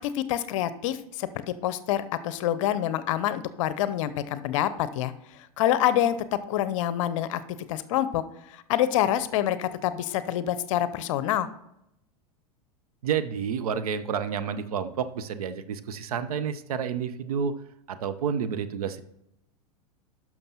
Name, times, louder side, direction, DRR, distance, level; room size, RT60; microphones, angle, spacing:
voice 1, 0.0-5.1 5.6-7.4 7.7-8.2 8.5-11.5, left 11 dB, 55° left, 14 dB, 0.6 m, -26 dB
voice 2, 13.0-17.5 17.9-19.0, right 7 dB, 70° right, 11 dB, 0.7 m, -30 dB
12.0 x 6.0 x 2.9 m, 0.81 s
figure-of-eight pair, 90°, 20 cm